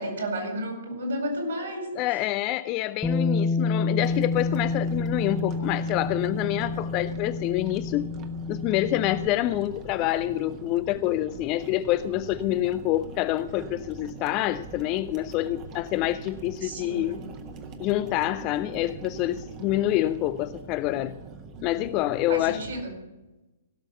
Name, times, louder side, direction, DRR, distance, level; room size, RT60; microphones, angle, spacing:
voice 1, 0.0-2.2 16.6-17.3 22.3-22.9, right 1 dB, 60° right, 4.7 m, -32 dB
voice 2, 2.0-8.0 8.5-17.2 17.8-21.2 21.6-22.6, left 15 dB, 30° left, 0.4 m, -27 dB
Bass guitar, 3.0-9.3, left 3 dB, 5° left, 0.7 m, -28 dB
sound 1, 4.0-22.8, right 4 dB, 25° right, 1.3 m, -42 dB
16.5 x 6.4 x 7.3 m
figure-of-eight pair, 115°, 0 cm